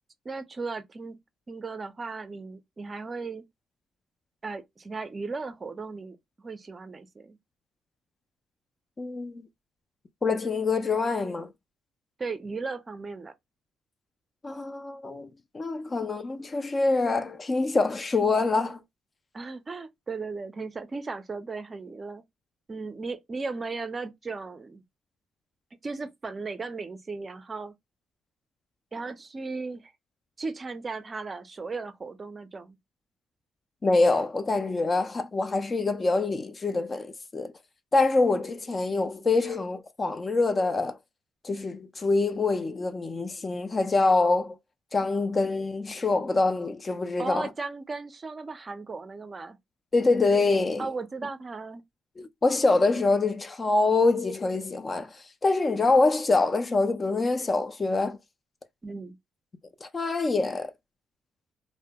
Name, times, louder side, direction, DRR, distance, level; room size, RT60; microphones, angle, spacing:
voice 1, 0.2-1.2 1.5-3.4 4.4-7.4 12.2-13.3 19.3-22.2 22.7-24.8 25.8-27.7 28.9-29.9 30.4-32.8 47.2-49.6 50.8-51.8 58.8-59.1, right 4 dB, 30° right, 0.4 m, -36 dB
voice 2, 9.0-9.5 10.2-11.5 14.4-15.3 15.5-18.8 33.8-37.5 37.9-41.0 41.4-44.6 44.9-47.5 49.9-50.9 52.2-58.2 59.8-60.7, left 3 dB, 30° left, 0.3 m, -25 dB
2.2 x 2.1 x 2.7 m
cardioid pair, 90°, 0 cm